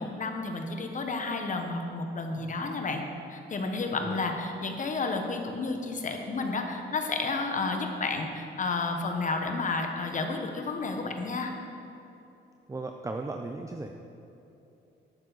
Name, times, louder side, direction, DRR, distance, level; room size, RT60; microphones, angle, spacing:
voice 1, 0.0-3.0 3.3-11.5, left 3 dB, 40° left, 4 dB, 1.2 m, -31 dB
voice 2, 12.7-13.9, right 3 dB, 15° right, 4 dB, 0.5 m, -36 dB
11.5 x 8.9 x 4.1 m, 2.8 s
cardioid pair, 90°, 20 cm